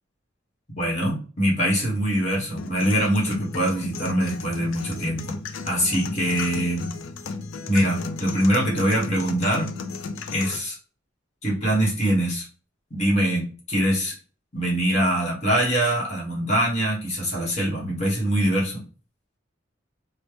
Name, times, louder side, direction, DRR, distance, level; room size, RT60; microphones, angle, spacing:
voice 1, 0.7-5.4 5.6-6.9 7.7-9.7 10.3-10.8 11.4-12.4 12.9-14.1 14.5-18.8, right 1 dB, 35° left, -4 dB, 1.3 m, -23 dB
sound 1, 2.6-10.6, left 4 dB, 80° left, 0.4 m, -35 dB
3.1 x 2.1 x 3.2 m, 0.38 s
head